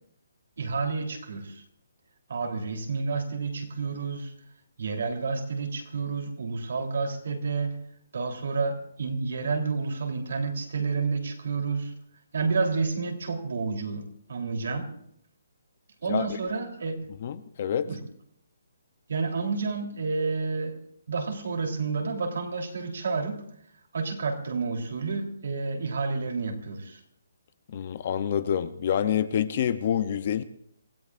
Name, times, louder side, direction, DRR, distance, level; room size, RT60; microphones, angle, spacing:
voice 1, 0.6-1.6 2.3-4.3 4.8-7.8 8.1-11.9 12.3-14.9 16.0-17.0 17.8-18.0 19.1-20.8 21.1-23.4 23.9-27.0, right 4 dB, 55° right, 3 dB, 3.3 m, -30 dB
voice 2, 17.2-17.9 27.7-30.4, left 9 dB, 30° left, 13 dB, 0.6 m, -27 dB
27.5 x 17.5 x 2.5 m, 0.70 s
hypercardioid pair, 180°, 0 cm